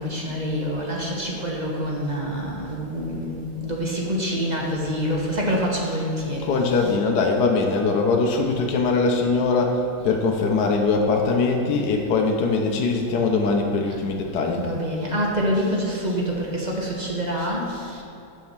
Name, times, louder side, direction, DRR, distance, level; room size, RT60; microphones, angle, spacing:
voice 1, 0.0-6.5 14.6-18.0, equal, 25° right, -2 dB, 1.2 m, -26 dB
voice 2, 6.4-14.7, left 4 dB, 65° left, 1 dB, 1.4 m, -22 dB
7.4 x 6.4 x 7.4 m, 2.7 s
omnidirectional pair, 2.1 m